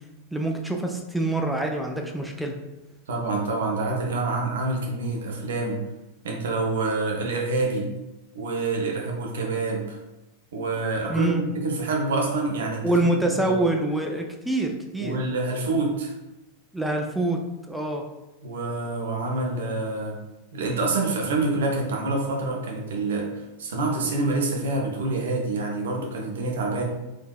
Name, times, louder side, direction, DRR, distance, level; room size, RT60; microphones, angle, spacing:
voice 1, 0.3-2.5 11.1-11.4 12.8-15.2 16.7-17.4 17.7-18.0, right 2 dB, ahead, 2 dB, 0.4 m, -25 dB
voice 2, 3.1-5.8 6.2-7.9 8.3-10.0 10.5-13.1 13.4-13.6 15.0-16.1 18.4-20.2 20.5-26.8, right 3 dB, 60° right, 0 dB, 0.6 m, -27 dB
3.7 x 2.7 x 2.2 m, 1.0 s
figure-of-eight pair, 90°, 0 cm